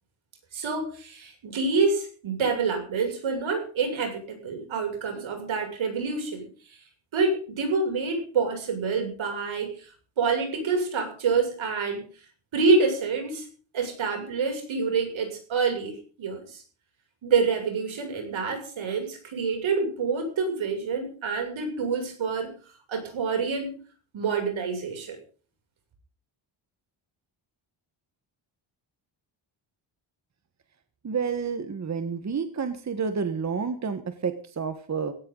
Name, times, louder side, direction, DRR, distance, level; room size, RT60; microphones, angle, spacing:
voice 1, 0.5-6.8 7.1-12.0 12.5-13.5 13.7-16.6 17.2-22.5 22.9-23.8 24.1-25.2, right 4 dB, 70° right, 4 dB, 7.2 m, -27 dB
voice 2, 31.0-35.1, right 5 dB, 35° right, 8 dB, 1.5 m, -29 dB
18.0 x 17.5 x 4.0 m, 0.40 s
wide cardioid pair, 145°, 48 cm